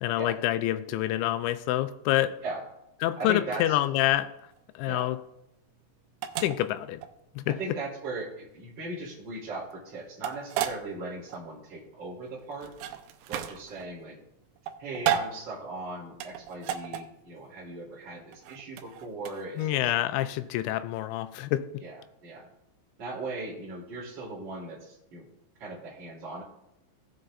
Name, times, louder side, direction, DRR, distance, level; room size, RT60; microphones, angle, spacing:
voice 1, 0.0-2.4 3.0-4.3 4.8-5.2 6.4-7.0 7.4-7.6 19.6-21.8, left 14 dB, 85° left, 2.8 m, -27 dB
voice 2, 3.2-3.8 4.8-5.1 7.4-12.7 13.3-14.2 14.8-20.5 21.8-22.5 23.0-25.3 25.6-26.4, right 2 dB, 30° right, 3.1 m, -38 dB
sound 1, 4.5-19.9, right 10 dB, 85° right, 3.0 m, -35 dB
16.5 x 7.8 x 2.5 m
omnidirectional pair, 5.3 m